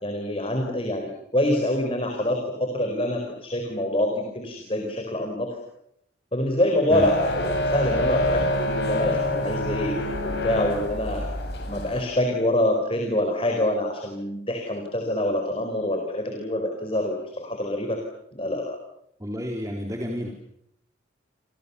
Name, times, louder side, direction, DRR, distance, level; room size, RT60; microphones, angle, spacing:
voice 1, 0.0-5.5 6.3-11.3 11.7-18.0 18.3-18.8, left 1 dB, 30° left, 3 dB, 4.7 m, -26 dB
sound 1, 6.9-12.0, left 1 dB, 60° left, 8.0 m, -26 dB
voice 2, 19.2-20.3, equal, 15° right, 1 dB, 4.1 m, -30 dB
30.0 x 27.5 x 7.1 m, 0.75 s
head